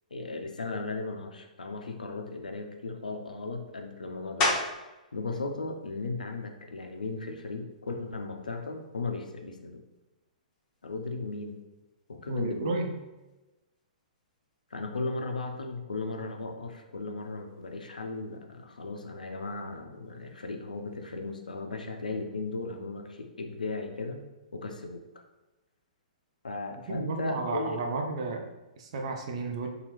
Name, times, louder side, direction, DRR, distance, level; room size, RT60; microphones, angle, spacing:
voice 1, 0.1-4.5 5.1-9.8 10.8-11.6 12.1-12.7 14.7-24.3 24.5-25.0 26.4-27.8, left 3 dB, 70° left, 4 dB, 0.4 m, -36 dB
sound 1, 4.4-5.0 5.6-10.0 10.5-15.7 15.9-21.6, left 2 dB, 25° left, 0.6 m, -39 dB
voice 2, 12.3-12.9 26.9-28.5 28.8-29.7, right 3 dB, 45° right, 3 dB, 0.4 m, -32 dB
2.8 x 2.3 x 3.1 m, 1.1 s
figure-of-eight pair, 115°, 4 cm